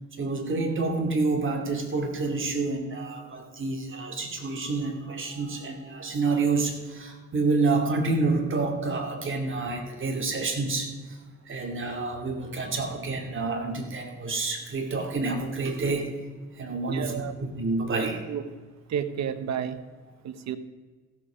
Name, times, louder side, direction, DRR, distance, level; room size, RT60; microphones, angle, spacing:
voice 1, 0.2-10.9 11.5-16.1 16.6-18.2, right 3 dB, 40° right, 3 dB, 2.4 m, -28 dB
voice 2, 16.9-17.3 18.0-18.4 18.9-19.8 20.2-20.6, right 8 dB, 65° right, 12 dB, 0.9 m, -31 dB
15.0 x 7.1 x 5.0 m, 1.4 s
cardioid pair, 90°, 30 cm